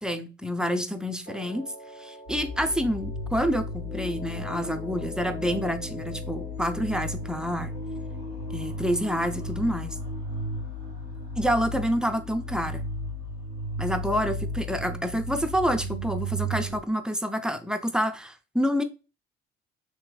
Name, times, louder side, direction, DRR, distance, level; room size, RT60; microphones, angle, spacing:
voice 1, 0.0-1.7 2.0-7.7 8.5-10.0 11.4-12.8 13.8-18.8, equal, ahead, 0.4 m, -28 dB
Piano, 1.3-7.4, right 2 dB, 30° left, 1.0 m, -51 dB
sound 1, 2.3-16.8, left 1 dB, 80° left, 1.2 m, -34 dB
3.2 x 3.0 x 2.2 m
hypercardioid pair, 50°, 33 cm